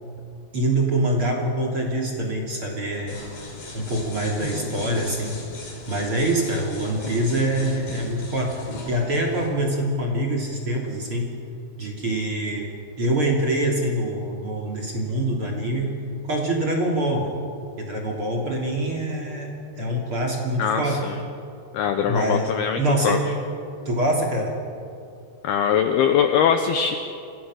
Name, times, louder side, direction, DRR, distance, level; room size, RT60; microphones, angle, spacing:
voice 1, 0.5-3.2 3.7-5.5 5.9-11.4 11.8-16.0 16.2-17.4 17.8-21.1 22.1-23.3 23.8-24.6, right 1 dB, 30° right, -1 dB, 3.1 m, -25 dB
sound 1, 3.1-9.5, left 2 dB, 45° left, 6.6 m, -37 dB
voice 2, 20.6-21.2 21.7-22.8 23.0-23.2 25.4-27.0, left 8 dB, 75° left, 7 dB, 2.4 m, -21 dB
28.0 x 26.0 x 6.5 m, 2.5 s
omnidirectional pair, 5.7 m